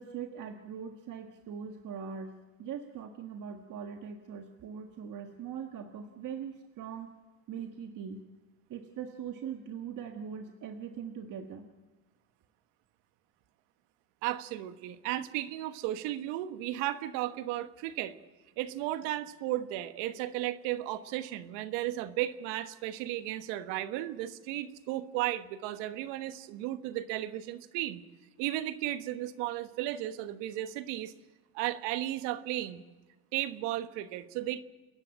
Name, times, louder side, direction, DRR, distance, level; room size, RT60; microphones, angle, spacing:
voice 1, 0.0-7.1 7.5-8.2 8.7-11.7, right 7 dB, 45° right, 5 dB, 1.6 m, -41 dB
voice 2, 14.2-18.2 18.6-28.0 28.4-31.1 31.5-32.8 33.3-34.6, right 14 dB, 75° right, 12 dB, 1.4 m, -34 dB
28.5 x 10.5 x 9.0 m, 1.2 s
supercardioid pair, 110°, 43 cm